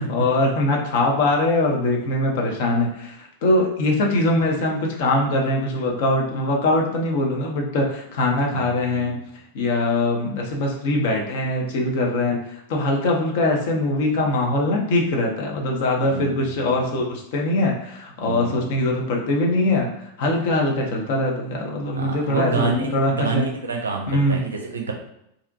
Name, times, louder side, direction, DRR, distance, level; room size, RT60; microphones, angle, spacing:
voice 1, 0.1-9.2 9.5-23.5 24.1-24.4, left 2 dB, 50° left, 0 dB, 0.5 m, -22 dB
voice 2, 8.5-9.2 16.0-16.9 18.2-18.8 21.9-24.9, right 3 dB, 70° right, 1 dB, 0.5 m, -28 dB
2.5 x 2.1 x 2.5 m, 0.78 s
figure-of-eight pair, 90°, 0 cm